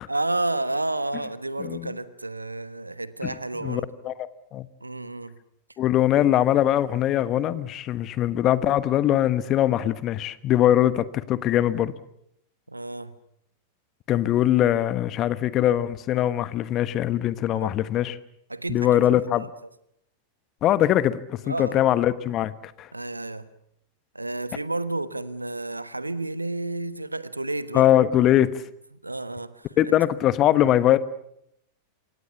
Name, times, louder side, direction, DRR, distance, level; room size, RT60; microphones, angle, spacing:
voice 1, 0.1-3.9 4.8-5.4 12.7-13.2 17.5-17.8 18.5-19.1 19.3-19.5 21.4-21.8 22.9-23.5 24.1-27.9 29.0-30.0, right 2 dB, 85° right, 1.3 m, -31 dB
voice 2, 1.6-1.9 3.2-3.3 3.6-4.1 4.5-4.7 5.8-11.9 14.1-18.1 18.7-19.4 20.6-22.5 22.8-22.9 27.7-28.5 29.8-31.0, left 12 dB, 35° left, 1.3 m, -21 dB
27.5 x 24.5 x 7.1 m
figure-of-eight pair, 90°, 0 cm